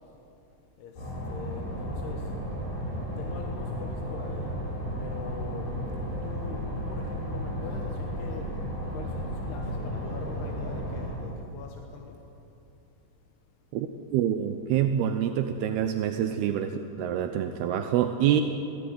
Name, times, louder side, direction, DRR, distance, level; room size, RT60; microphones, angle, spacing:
voice 1, 0.8-2.2 3.2-4.5 4.9-5.7 6.2-8.5 8.9-12.2, left 6 dB, 80° left, 1 dB, 3.4 m, -43 dB
sound 1, 1.0-11.2, equal, 60° left, 9.4 m, -33 dB
voice 2, 14.1-18.4, right 10 dB, 80° right, 7 dB, 2.8 m, -26 dB
22.0 x 17.0 x 9.5 m, 2.8 s
omnidirectional pair, 4.6 m